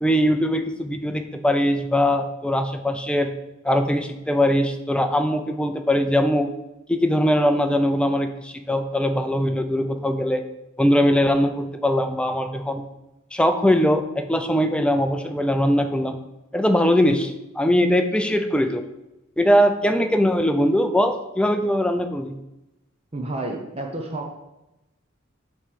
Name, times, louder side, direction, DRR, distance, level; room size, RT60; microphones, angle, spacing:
voice 1, 0.0-3.3 3.6-6.5 6.9-10.4 10.8-12.8 13.3-16.2 16.5-18.8 19.4-22.4, equal, 5° left, 7 dB, 0.5 m, -21 dB
voice 2, 23.1-24.3, right 2 dB, 30° right, 1 dB, 0.8 m, -30 dB
7.9 x 3.3 x 5.8 m, 0.95 s
head